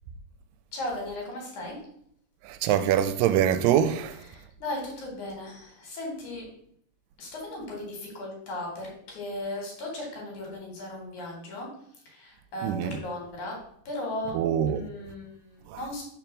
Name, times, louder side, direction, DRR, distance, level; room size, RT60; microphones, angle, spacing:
voice 1, 0.7-1.8 4.3-6.5 7.2-11.7 12.1-13.6 13.8-14.4 14.7-16.0, left 1 dB, 60° left, 3.2 m, -36 dB
voice 2, 2.4-4.2 12.6-13.0 14.3-14.9 15.7-15.8, right 10 dB, 85° right, 2.2 m, -24 dB
5.1 x 4.5 x 6.0 m
omnidirectional pair, 4.0 m